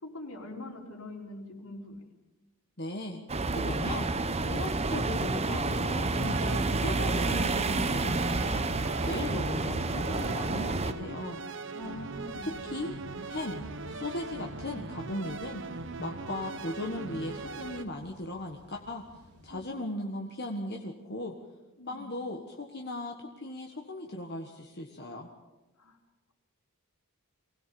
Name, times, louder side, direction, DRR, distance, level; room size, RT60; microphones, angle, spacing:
voice 1, 0.0-2.0 11.7-12.6 19.5-19.7 21.8-22.1 25.8-26.0, left 1 dB, 85° left, 0 dB, 4.5 m, -43 dB
voice 2, 2.8-3.2 3.5-4.1 4.4-8.6 9.0-11.4 12.4-12.9 13.3-13.6 13.9-15.6 16.0-19.0 19.4-21.3 21.9-25.3, left 1 dB, 50° left, 1 dB, 1.6 m, -37 dB
sound 1, 3.3-10.9, right 3 dB, 30° right, 0.9 m, -29 dB
sound 2, 6.1-17.8, right 3 dB, 55° right, 1.0 m, -40 dB
sound 3, 11.8-19.7, right 1 dB, 90° right, 3.6 m, -51 dB
23.5 x 17.0 x 7.0 m, 1.1 s
head